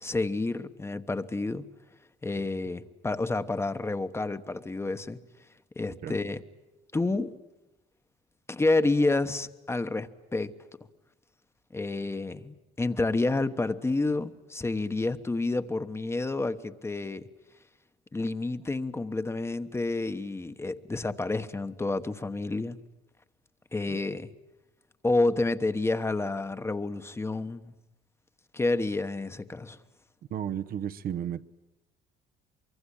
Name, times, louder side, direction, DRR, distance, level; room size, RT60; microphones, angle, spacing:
voice 1, 0.0-1.7 2.2-5.2 5.8-6.4 6.9-7.3 8.5-10.5 11.7-17.3 18.1-22.8 23.7-24.3 25.0-27.7 28.5-29.8, left 2 dB, 15° left, 1.1 m, -29 dB
voice 2, 30.3-31.4, right 9 dB, 60° right, 0.9 m, -33 dB
24.0 x 23.5 x 10.0 m
cardioid pair, 110°, 17 cm